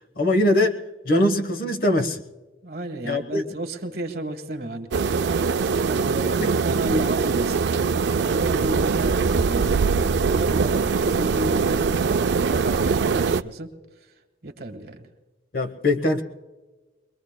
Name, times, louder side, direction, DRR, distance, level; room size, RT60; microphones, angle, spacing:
voice 1, 0.2-0.8 1.0-2.2 3.0-3.4 6.4-6.5 15.5-16.2, left 1 dB, 50° left, 9 dB, 1.0 m, -21 dB
voice 2, 2.6-5.1 5.4-7.7 8.2-9.8 10.0-13.7 14.4-15.1, right 1 dB, 55° right, 6 dB, 1.5 m, -32 dB
sound 1, 4.9-13.4, right 5 dB, 75° right, 0.4 m, -22 dB
23.0 x 22.5 x 2.2 m, 1.2 s
head